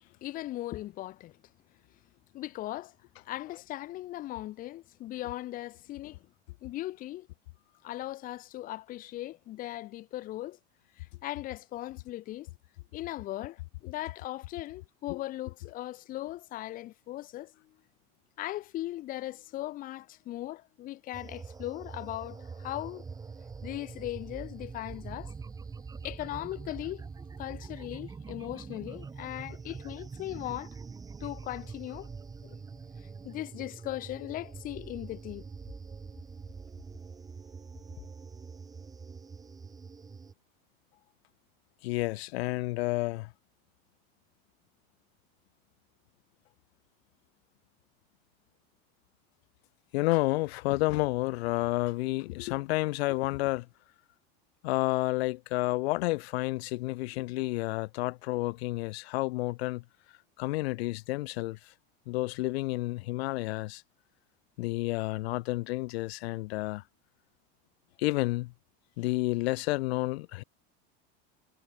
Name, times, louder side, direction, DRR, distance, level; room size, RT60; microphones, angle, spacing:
voice 1, 0.2-1.4 2.3-2.9 3.2-6.2 6.6-7.3 7.8-10.6 11.0-12.5 12.9-17.5 18.4-23.0 23.6-25.3 26.0-27.1 27.4-30.7 31.2-32.1 32.4-32.6 33.2-35.4, left 15 dB, 25° left, 0.7 m, -38 dB
sound 1, 21.1-40.3, right 5 dB, 10° right, 2.1 m, -44 dB
voice 2, 41.8-43.3 49.9-53.7 54.6-59.8 60.4-61.7 62.1-63.8 64.6-66.8 68.0-68.5 69.0-70.4, left 21 dB, 80° left, 1.5 m, -30 dB
cardioid pair, 170°, 31 cm